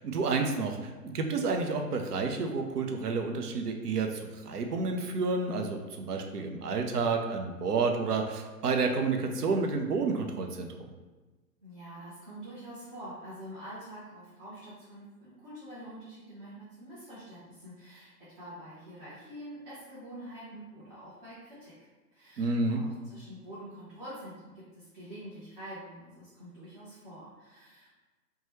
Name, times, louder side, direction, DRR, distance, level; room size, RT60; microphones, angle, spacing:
voice 1, 0.0-10.9 22.4-22.8, right 4 dB, 70° right, 4 dB, 0.6 m, -30 dB
voice 2, 11.6-27.9, right 1 dB, 30° right, -11 dB, 0.9 m, -46 dB
3.0 x 2.2 x 3.0 m, 1.2 s
figure-of-eight pair, 145°, 48 cm